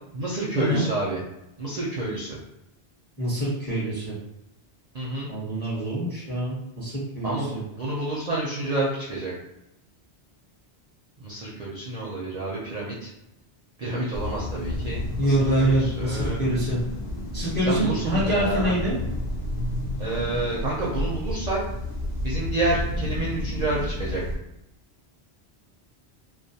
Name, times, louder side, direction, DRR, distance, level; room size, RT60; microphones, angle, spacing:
voice 1, 0.1-1.2 1.6-2.4 4.9-5.3 7.2-9.3 11.2-13.1 13.8-16.4 17.7-18.7 20.0-21.6 22.2-24.2, right 2 dB, 55° right, -6 dB, 0.5 m, -29 dB
voice 2, 3.2-4.2 5.3-7.6 15.2-16.8 17.3-19.0, right 1 dB, 10° left, -6 dB, 0.6 m, -25 dB
sound 1, 14.1-24.4, left 1 dB, 70° left, 0.9 m, -31 dB
2.3 x 2.2 x 2.7 m, 0.86 s
omnidirectional pair, 1.1 m